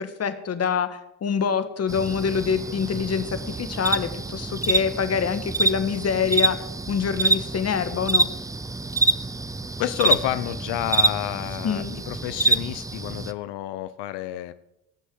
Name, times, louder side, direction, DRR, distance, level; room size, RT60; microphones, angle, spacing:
voice 1, 0.0-6.6 6.9-8.3 11.6-12.0, left 6 dB, 40° left, 10 dB, 1.5 m, -25 dB
sound 1, 1.9-13.3, right 3 dB, 10° right, 0.5 m, -26 dB
voice 2, 9.8-14.5, left 14 dB, 85° left, 13 dB, 0.7 m, -29 dB
18.0 x 6.5 x 7.8 m, 0.85 s
cardioid pair, 115°, 40 cm